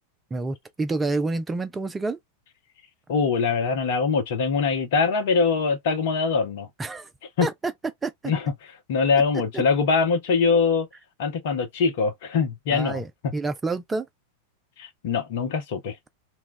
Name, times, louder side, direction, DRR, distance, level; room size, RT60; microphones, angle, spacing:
voice 1, 0.3-2.2 6.8-7.1 7.4-7.7 8.0-8.3 9.3-9.6 12.7-14.1, right 3 dB, 15° right, 0.4 m, -28 dB
voice 2, 3.1-6.7 7.4-7.5 8.2-8.5 8.9-10.9 11.2-13.0 14.8-16.1, left 5 dB, 50° left, 0.7 m, -23 dB
2.3 x 2.1 x 3.7 m
figure-of-eight pair, 90°, 0 cm